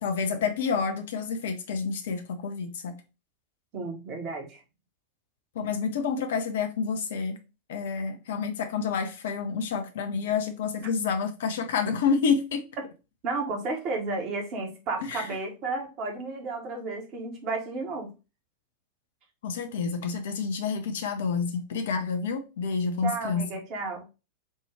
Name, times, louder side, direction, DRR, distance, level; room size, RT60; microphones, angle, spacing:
voice 1, 0.0-3.0 5.6-7.4 7.7-12.6 15.0-15.3 19.4-23.5, left 5 dB, 60° left, 0.5 m, -29 dB
voice 2, 3.7-4.6 10.1-10.3 10.8-10.9 12.8-12.9 13.2-18.1 23.0-24.0, right 3 dB, 40° right, 1.1 m, -33 dB
4.3 x 2.2 x 3.2 m
figure-of-eight pair, 90°, 0 cm